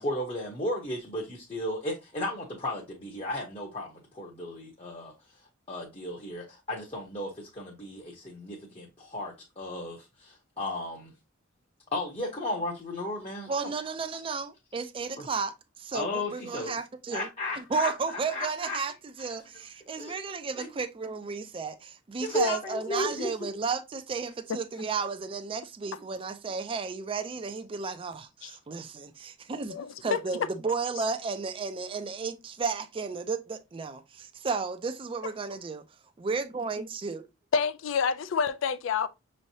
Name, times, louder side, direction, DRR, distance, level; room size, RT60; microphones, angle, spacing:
voice 1, 0.0-5.1 5.7-11.1 11.9-13.5 15.2-15.3 15.9-16.7 17.1-17.9 18.3-18.8 20.0-20.1 20.6-20.7 22.2-23.3, left 1 dB, 30° left, 0.9 m, -34 dB
voice 2, 13.5-17.3 17.6-35.8 36.2-37.3, right 4 dB, 25° right, 0.4 m, -33 dB
voice 3, 29.7-30.2 37.5-39.1, left 6 dB, 70° left, 0.4 m, -28 dB
6.2 x 3.2 x 2.7 m
head